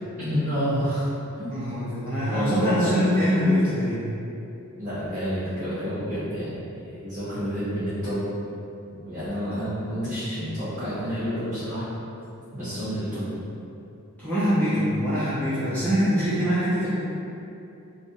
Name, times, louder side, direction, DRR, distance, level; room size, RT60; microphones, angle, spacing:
voice 1, 0.2-1.1 1.3-1.5 2.3-3.1 4.8-6.6 6.8-8.2 9.0-11.9 12.5-13.3, equal, 35° right, -15 dB, 0.8 m, -28 dB
voice 2, 1.5-4.1 14.2-16.9, equal, 10° left, -14 dB, 0.5 m, -23 dB
3.2 x 2.4 x 2.7 m, 2.8 s
head